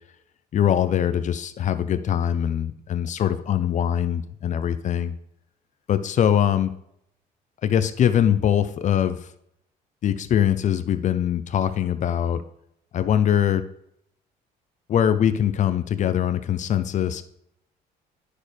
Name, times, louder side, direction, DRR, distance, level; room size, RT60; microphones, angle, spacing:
voice 1, 0.5-5.1 5.9-6.7 7.6-9.3 10.0-12.4 12.9-13.6 14.9-17.2, left 9 dB, 45° left, 12 dB, 0.5 m, -22 dB
9.7 x 6.4 x 3.3 m, 0.74 s
cardioid pair, 110°, 17 cm